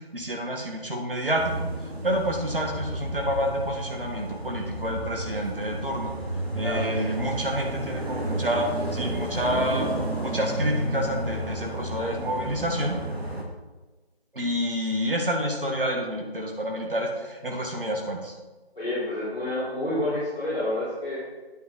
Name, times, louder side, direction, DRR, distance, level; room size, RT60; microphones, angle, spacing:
voice 1, 0.1-1.7 2.0-6.1 6.5-9.9 10.2-13.0 14.3-18.3, equal, 60° right, 1 dB, 1.8 m, -28 dB
sound 1, 1.4-13.4, right 1 dB, 75° right, 2.2 m, -32 dB
voice 2, 6.6-7.2 18.7-21.2, left 1 dB, ahead, -28 dB, 1.1 m, -29 dB
9.2 x 7.4 x 4.0 m, 1.2 s
figure-of-eight pair, 165°, 32 cm